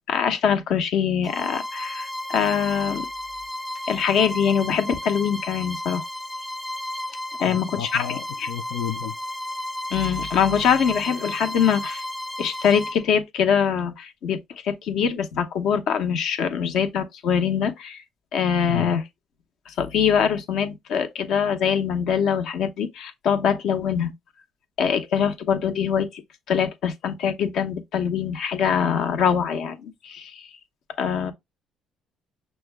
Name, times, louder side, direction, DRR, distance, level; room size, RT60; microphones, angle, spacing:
voice 1, 0.1-3.1 3.9-6.0 7.4-8.5 9.9-12.0 12.4-14.4 14.6-18.0 18.3-19.0 19.7-24.1 24.8-26.2 26.5-30.5 31.0-31.3, left 7 dB, 70° left, 0.9 m, -23 dB
Bowed string instrument, 1.2-13.0, left 1 dB, 5° left, 0.5 m, -33 dB
voice 2, 7.5-9.1 18.6-18.9, left 11 dB, 85° left, 0.4 m, -32 dB
6.1 x 2.2 x 3.3 m
supercardioid pair, 80°, 0 cm